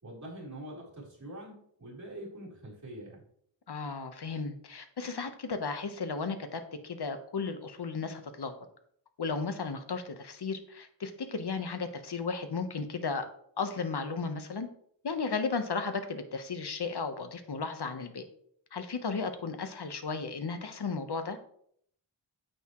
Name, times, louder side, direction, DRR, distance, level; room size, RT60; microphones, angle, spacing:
voice 1, 0.0-3.2, right 1 dB, 40° right, -5 dB, 4.3 m, -44 dB
voice 2, 3.7-8.5 9.2-13.3 13.6-14.7 15.0-18.2 18.7-21.4, left 4 dB, 55° left, 8 dB, 1.2 m, -34 dB
9.7 x 8.2 x 3.2 m, 0.66 s
wide cardioid pair, 85°, 46 cm